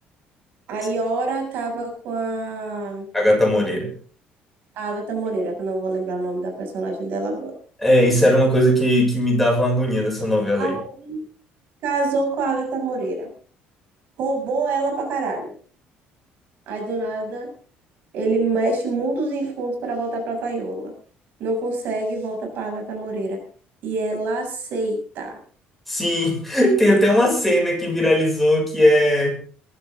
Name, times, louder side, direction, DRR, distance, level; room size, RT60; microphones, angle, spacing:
voice 1, 0.7-3.1 4.8-7.5 10.6-11.3 11.8-13.3 14.2-15.5 16.7-17.5 18.1-20.9 21.4-23.4 23.8-25.3, right 3 dB, 60° right, 4 dB, 7.1 m, -26 dB
voice 2, 3.1-3.9 7.8-10.8 25.9-29.4, equal, 5° left, 0 dB, 6.8 m, -18 dB
22.0 x 14.0 x 3.8 m, 0.42 s
cardioid pair, 150°, 4 cm